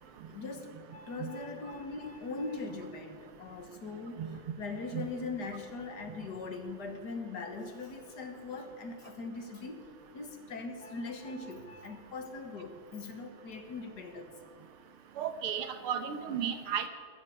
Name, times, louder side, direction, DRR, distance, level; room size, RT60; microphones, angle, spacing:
voice 1, 0.3-9.9 10.1-14.4 16.4-16.6, left 3 dB, 55° left, 6 dB, 1.9 m, -41 dB
voice 2, 15.2-16.9, right 8 dB, 85° right, 8 dB, 2.1 m, -34 dB
21.0 x 14.5 x 4.8 m, 2.1 s
omnidirectional pair, 2.3 m